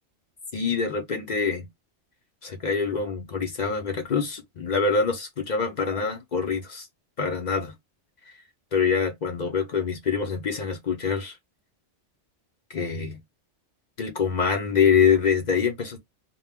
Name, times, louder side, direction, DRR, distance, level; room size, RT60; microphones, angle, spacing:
voice 1, 0.5-1.7 2.4-6.9 7.2-7.7 8.2-8.3 8.7-11.4 12.7-13.2 14.0-16.0, left 6 dB, 50° left, 0.5 m, -25 dB
2.2 x 2.0 x 3.3 m
omnidirectional pair, 1.2 m